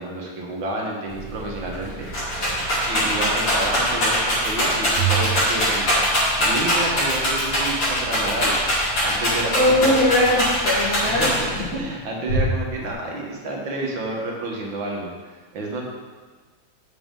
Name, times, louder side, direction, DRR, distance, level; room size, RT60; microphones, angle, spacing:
voice 1, 0.0-2.4 2.9-8.5 9.0-9.9 11.0-15.8, right 2 dB, 75° right, -1 dB, 2.1 m, -30 dB
sound 1, 1.1-11.8, right 6 dB, 60° right, 1.3 m, -34 dB
Rattle, 1.3-1.4 1.7-11.7 12.3-12.9, equal, 70° left, 3.6 m, -22 dB
voice 2, 9.5-11.3 11.6-11.8, left 1 dB, 50° left, -9 dB, 2.0 m, -20 dB
7.8 x 7.5 x 3.7 m, 1.4 s
omnidirectional pair, 2.1 m